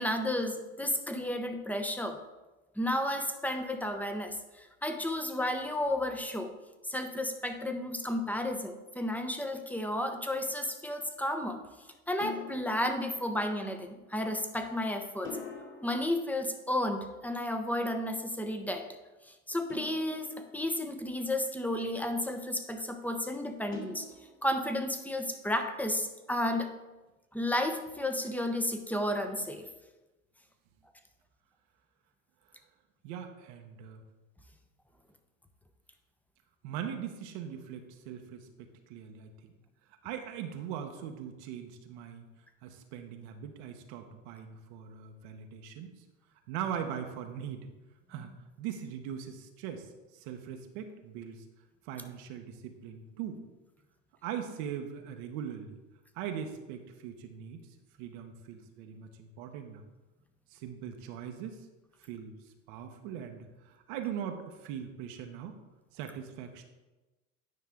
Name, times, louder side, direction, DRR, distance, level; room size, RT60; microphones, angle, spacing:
voice 1, 0.0-2.2 2.8-6.5 6.8-11.6 12.1-15.4 15.8-18.9 19.3-24.1 24.4-26.7 27.3-29.7, left 1 dB, 5° left, 6 dB, 0.9 m, -32 dB
sound 1, 9.5-10.0 12.2-13.7 15.2-17.2 19.7-21.4 23.7-24.9, left 4 dB, 30° left, 2.4 m, -46 dB
voice 2, 33.0-34.0 36.6-38.5 38.9-39.3 40.0-42.2 42.6-46.0 46.5-47.7 48.1-48.3 48.6-51.4 51.8-53.4 54.2-55.8 56.1-57.6 58.0-59.8 60.5-61.6 62.0-62.3 62.7-65.6 65.9-66.6, right 8 dB, 65° right, 5 dB, 1.1 m, -40 dB
9.7 x 5.5 x 3.6 m, 1.1 s
hypercardioid pair, 80°, 39 cm